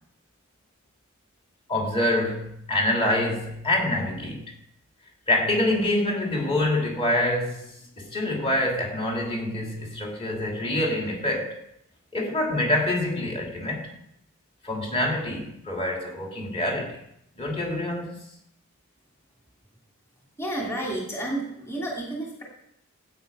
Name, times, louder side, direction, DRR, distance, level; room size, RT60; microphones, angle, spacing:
voice 1, 1.7-4.4 5.3-11.6 12.1-13.9 14.6-17.0 17.4-18.2, left 1 dB, 30° left, 3.1 m, -26 dB
voice 2, 20.4-22.4, right 1 dB, 15° left, 2.7 m, -31 dB
15.5 x 8.5 x 5.4 m
head